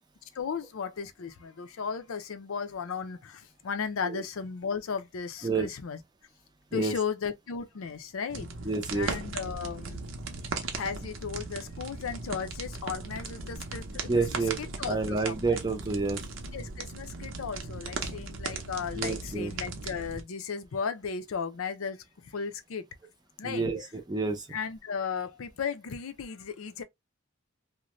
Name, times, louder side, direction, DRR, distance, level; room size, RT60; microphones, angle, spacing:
voice 1, 0.4-3.2 3.6-6.0 6.7-8.5 8.9-10.0 10.8-13.8 14.2-15.6 16.5-22.0 22.3-22.8 23.4-23.7 24.5-26.8, left 6 dB, 80° left, 0.5 m, -35 dB
sound 1, 8.3-20.2, right 4 dB, 65° right, 0.6 m, -38 dB
voice 2, 8.6-9.1 14.1-14.6 14.9-16.2 19.0-19.5 23.4-24.5, right 3 dB, 20° right, 0.5 m, -29 dB
2.5 x 2.1 x 3.0 m
head